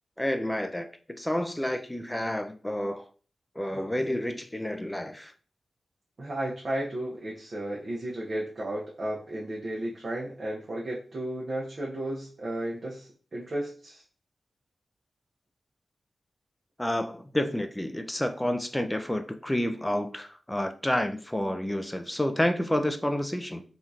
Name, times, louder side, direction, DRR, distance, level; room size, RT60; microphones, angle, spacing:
voice 1, 0.2-3.1 3.6-5.3 16.8-23.6, left 1 dB, 10° left, 0.3 m, -29 dB
voice 2, 3.7-4.1 6.2-14.0, right 1 dB, 45° right, 0.7 m, -34 dB
3.5 x 2.4 x 2.6 m
wide cardioid pair, 125°, 0 cm